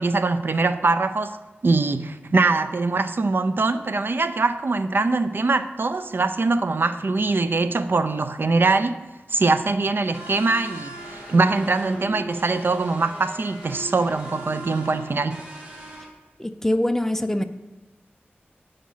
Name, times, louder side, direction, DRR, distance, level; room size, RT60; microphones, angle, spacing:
voice 1, 0.0-1.4 1.6-9.0 9.3-15.4, right 3 dB, 60° right, 0.4 m, -22 dB
sound 1, 10.1-16.1, right 1 dB, 25° right, 2.6 m, -39 dB
voice 2, 16.4-17.4, left 1 dB, 10° left, 0.4 m, -23 dB
8.5 x 5.1 x 5.6 m
wide cardioid pair, 80°, 4 cm